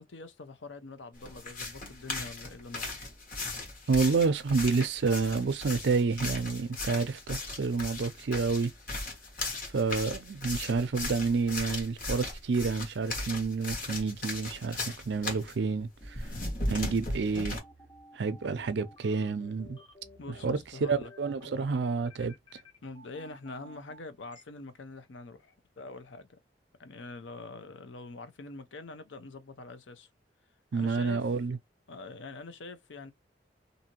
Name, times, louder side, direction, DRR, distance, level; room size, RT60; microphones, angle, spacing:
voice 1, 0.0-3.1 20.2-21.1 21.4-21.5 22.8-26.3 26.8-30.1 30.7-31.2 31.9-33.1, left 3 dB, 90° left, 0.6 m, -45 dB
sound 1, 1.2-15.5 16.0-17.6, left 2 dB, 45° left, 1.3 m, -37 dB
voice 2, 3.9-8.7 9.7-16.2 16.7-17.6 18.1-19.8 20.4-20.6 20.9-22.3 30.7-31.6, right 4 dB, 70° right, 0.4 m, -29 dB
sound 2, 16.0-24.4, left 1 dB, 25° left, 0.8 m, -54 dB
2.7 x 2.6 x 2.8 m
head